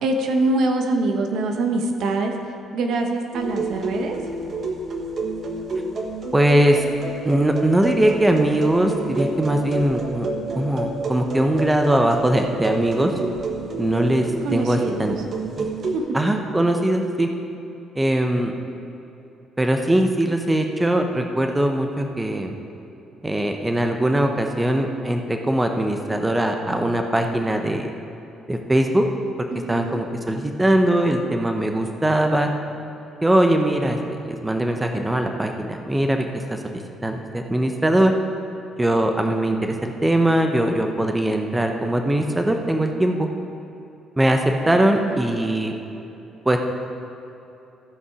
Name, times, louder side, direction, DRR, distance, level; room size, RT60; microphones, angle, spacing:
voice 1, 0.0-2.3 2.7-4.2 14.4-15.1 15.9-16.0 29.5-30.0 44.6-45.2, right 2 dB, 70° right, 4 dB, 1.1 m, -24 dB
sound 1, 3.3-16.0, right 2 dB, 45° right, 1.2 m, -29 dB
voice 2, 6.3-6.8 7.2-10.3 10.6-13.1 13.8-14.3 14.5-15.2 15.6-15.7 16.1-17.3 18.0-18.5 19.6-22.5 23.2-27.9 28.5-29.0 29.7-32.5 33.2-36.6 37.0-38.1 38.8-43.3 44.2-44.4 44.7-45.7 46.4-46.6, right 1 dB, 10° right, 4 dB, 0.7 m, -21 dB
15.5 x 5.4 x 4.8 m, 2.9 s
cardioid pair, 110°, 0 cm